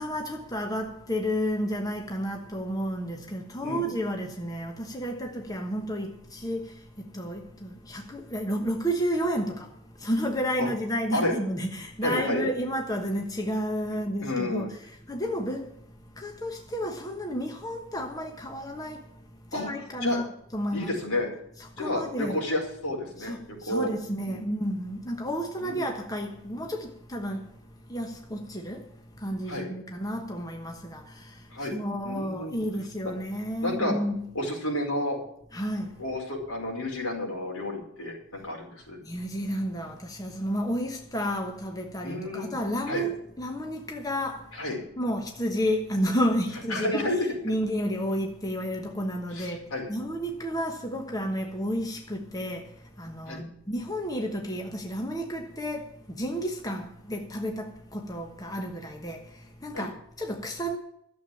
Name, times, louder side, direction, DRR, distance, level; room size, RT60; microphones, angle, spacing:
voice 1, 0.0-20.3 20.5-20.9 21.6-22.4 23.2-34.3 35.5-36.0 39.0-44.6 45.0-47.1 47.4-60.8, equal, 15° left, 1.1 m, -31 dB
voice 2, 12.0-12.4 13.9-14.7 19.5-19.7 20.0-20.2 20.7-21.3 21.8-23.9 24.3-24.4 25.6-25.9 29.5-29.7 31.5-31.7 32.0-32.6 33.6-33.9 34.3-35.2 36.0-39.0 42.0-42.5 42.9-43.0 44.6-44.8 46.7-47.3 49.3-49.9 53.3-53.4 59.7-59.9, left 1 dB, 80° left, 4.9 m, -31 dB
12.5 x 7.5 x 8.5 m
head